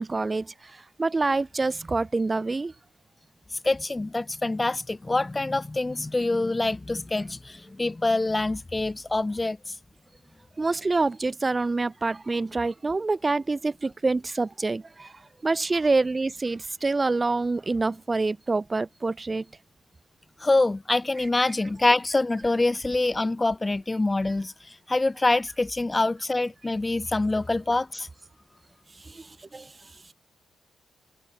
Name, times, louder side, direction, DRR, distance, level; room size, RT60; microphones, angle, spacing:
voice 1, 0.0-2.7 10.6-15.1 15.4-19.5 29.0-29.7, right 3 dB, 30° right, 7.2 m, -26 dB
voice 2, 3.6-9.6 20.4-28.1, left 2 dB, 20° left, 4.3 m, -25 dB
supercardioid pair, 60°, 0 cm